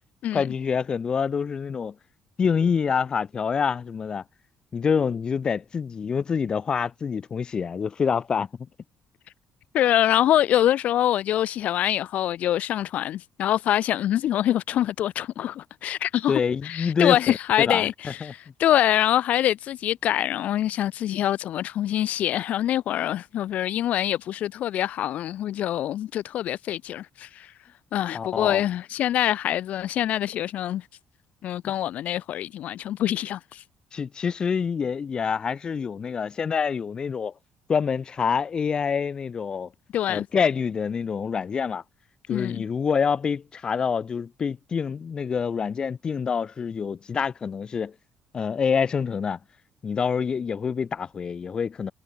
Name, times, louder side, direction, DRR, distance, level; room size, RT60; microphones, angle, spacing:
voice 1, 0.3-1.9 2.4-4.2 4.7-8.5 16.3-17.2 17.7-18.3 28.1-28.6 33.9-37.3 37.7-39.7 40.1-41.8 42.3-47.9 48.3-49.4 49.8-51.9, left 6 dB, 30° left, 6.8 m, -26 dB
voice 2, 9.7-17.9 18.2-27.5 27.9-30.8 31.4-33.6 39.9-40.2 42.3-42.6, left 12 dB, 60° left, 4.7 m, -25 dB
cardioid pair, 150°, 3 cm